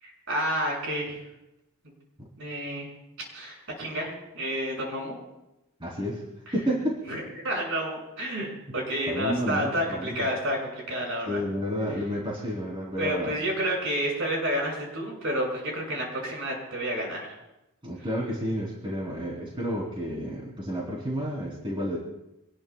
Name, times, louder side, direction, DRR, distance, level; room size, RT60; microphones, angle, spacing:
voice 1, 0.0-1.2 2.4-2.9 3.3-5.2 6.5-6.6 7.1-11.4 13.0-17.3, equal, 65° right, -1 dB, 6.5 m, -30 dB
voice 2, 5.8-6.2 6.5-7.0 9.1-10.3 11.2-13.3 17.8-22.0, equal, 25° right, -4 dB, 3.3 m, -30 dB
27.0 x 19.5 x 2.3 m, 0.94 s
head